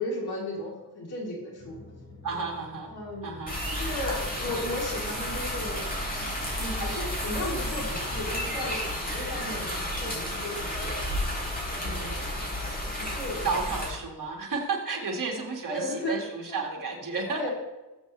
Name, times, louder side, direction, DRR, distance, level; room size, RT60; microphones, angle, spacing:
voice 1, 0.0-1.8 2.8-5.8 6.5-11.0 11.8-12.1 12.8-13.5 15.6-16.6 17.3-17.5, left 1 dB, 90° left, -4 dB, 4.0 m, -35 dB
sound 1, 1.6-8.9, left 2 dB, 45° left, 4.4 m, -48 dB
voice 2, 2.2-2.9 3.2-3.6 11.8-12.2 13.4-17.5, right 4 dB, 60° right, 0 dB, 2.6 m, -32 dB
sound 2, 3.5-13.9, left 1 dB, 25° left, 4.6 m, -32 dB
sound 3, 5.1-5.7 6.6-7.0 7.6-8.1, right 1 dB, 10° right, 3.6 m, -49 dB
20.5 x 8.0 x 3.5 m, 1.1 s
wide cardioid pair, 125°, 37 cm